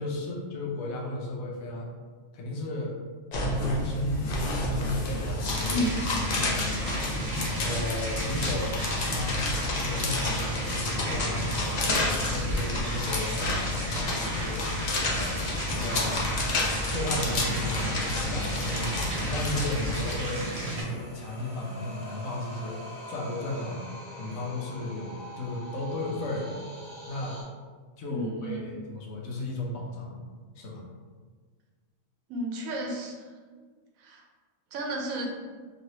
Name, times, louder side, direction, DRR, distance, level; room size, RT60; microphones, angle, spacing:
voice 1, 0.0-1.9 2.3-3.0 3.6-4.5 4.7-5.8 6.3-7.2 7.4-9.5 9.8-14.6 15.1-15.4 15.7-16.2 16.9-17.9 18.3-20.4 20.7-22.8 23.1-23.8 24.2-26.6 27.1-27.4 28.0-30.2 30.6-30.8, left 1 dB, 85° left, -1 dB, 1.1 m, -35 dB
sound 1, 3.3-20.2, left 2 dB, 60° left, 0.4 m, -30 dB
sound 2, 5.5-20.8, right 1 dB, 65° right, 1.3 m, -34 dB
voice 2, 5.7-6.1 28.1-28.7 32.3-33.3 34.0-34.2 34.7-35.3, right 1 dB, 85° right, 0 dB, 1.1 m, -32 dB
sound 3, 13.1-27.4, equal, 20° left, 1.3 m, -44 dB
3.1 x 3.0 x 2.7 m, 1.5 s
omnidirectional pair, 1.4 m